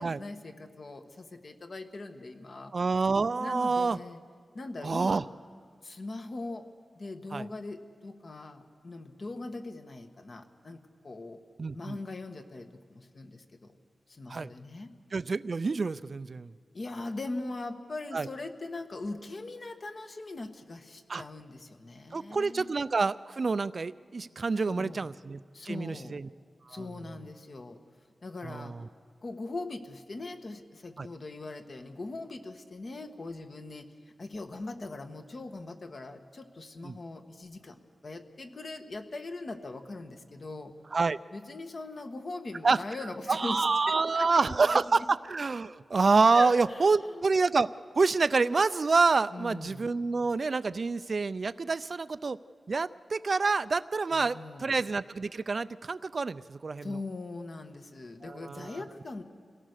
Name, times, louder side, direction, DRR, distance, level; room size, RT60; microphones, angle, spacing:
voice 1, 0.0-2.7 3.4-4.2 4.5-5.3 5.8-6.7 6.9-11.4 11.7-13.8 14.1-14.9 16.7-22.7 24.7-25.1 25.5-26.1 26.7-27.8 28.2-28.7 29.2-33.9 34.2-40.7 41.3-45.1 46.3-47.2 49.3-49.9 54.1-54.7 56.8-59.2, left 2 dB, 45° left, 6 dB, 1.3 m, -41 dB
voice 2, 2.7-4.0 4.8-5.2 7.3-7.5 11.6-12.0 14.3-14.5 15.1-16.5 18.1-18.3 21.1-21.2 22.1-25.4 25.6-26.3 26.7-26.9 28.4-28.8 31.0-31.1 36.8-37.0 40.9-41.2 42.6-42.8 43.3-52.4 52.7-57.0 58.2-58.8, right 4 dB, 45° right, 16 dB, 0.5 m, -27 dB
26.5 x 17.5 x 6.6 m, 2.1 s
wide cardioid pair, 100°, 0 cm